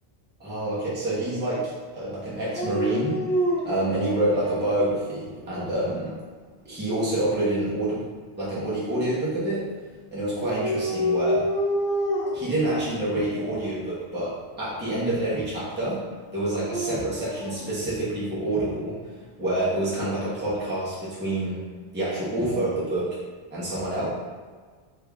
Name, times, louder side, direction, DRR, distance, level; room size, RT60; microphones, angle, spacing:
voice 1, 0.4-3.2 3.6-6.2 6.6-8.0 8.4-9.7 10.1-11.5 12.3-19.0 19.4-21.7 21.9-23.2 23.5-24.1, right 1 dB, 10° right, -9 dB, 0.8 m, -27 dB
Dog, 2.5-4.7 5.3-6.1 10.2-12.5 13.3-13.8 16.3-17.6, equal, 55° left, 1.0 m, -28 dB
3.5 x 3.4 x 2.3 m, 1.5 s
omnidirectional pair, 1.2 m